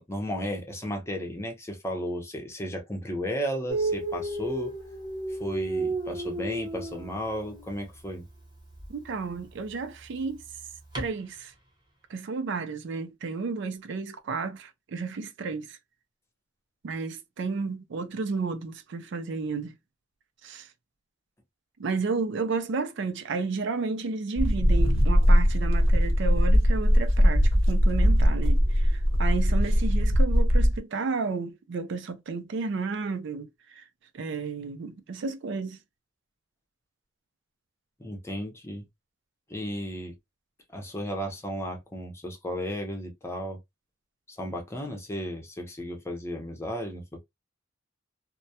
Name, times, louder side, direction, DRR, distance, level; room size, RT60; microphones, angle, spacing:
voice 1, 0.0-4.7 5.3-8.3 38.0-38.9 39.5-40.2 40.7-43.6 44.3-47.2, equal, 15° left, 0.6 m, -34 dB
Dog, 3.7-7.7 8.7-8.9 10.9-11.1, right 2 dB, 20° right, 0.8 m, -32 dB
voice 2, 8.9-10.4 10.9-11.5 12.1-15.8 16.8-19.7 20.4-20.7 21.8-33.9 34.1-35.8, right 4 dB, 65° right, 0.4 m, -32 dB
sound 1, 24.4-30.8, equal, 85° right, 0.8 m, -21 dB
2.2 x 2.1 x 2.7 m
head